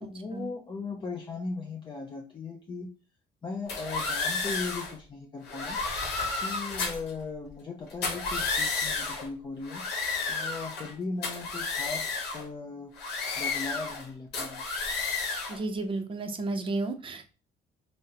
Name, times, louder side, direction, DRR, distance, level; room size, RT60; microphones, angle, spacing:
voice 1, 0.0-2.9 3.4-5.8 6.3-9.9 10.3-12.9 13.4-14.6, left 4 dB, 30° left, 0 dB, 0.6 m, -38 dB
sound 1, 3.7-4.9 5.5-7.1 7.9-9.3 9.6-10.9 11.2-12.4 13.0-14.0 14.3-15.6, left 4 dB, 80° left, 0.9 m, -32 dB
voice 2, 15.5-17.3, right 3 dB, 30° right, 6 dB, 0.6 m, -32 dB
3.5 x 2.1 x 2.7 m, 0.34 s
cardioid pair, 110°, 17 cm